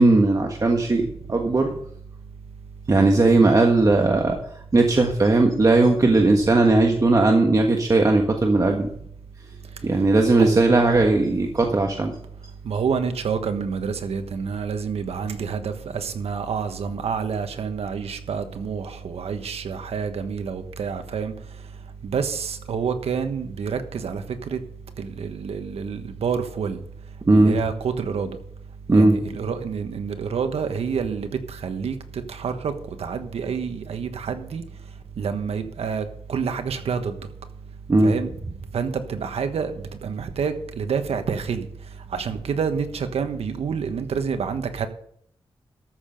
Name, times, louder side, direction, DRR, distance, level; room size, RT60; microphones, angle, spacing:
voice 1, 0.0-1.7 2.9-4.3 4.7-8.9 9.8-12.1 27.3-27.6 28.9-29.1 37.9-38.1, right 2 dB, 35° right, 1.4 m, -18 dB
voice 2, 12.6-21.3 22.0-24.6 25.0-26.8 27.3-28.4 28.9-31.9 32.3-32.7 33.0-34.6 35.2-37.1 38.0-38.3 38.7-39.7 40.0-41.6 42.1-44.9, right 6 dB, 85° right, 1.3 m, -28 dB
13.5 x 6.8 x 5.3 m
wide cardioid pair, 90°, 10 cm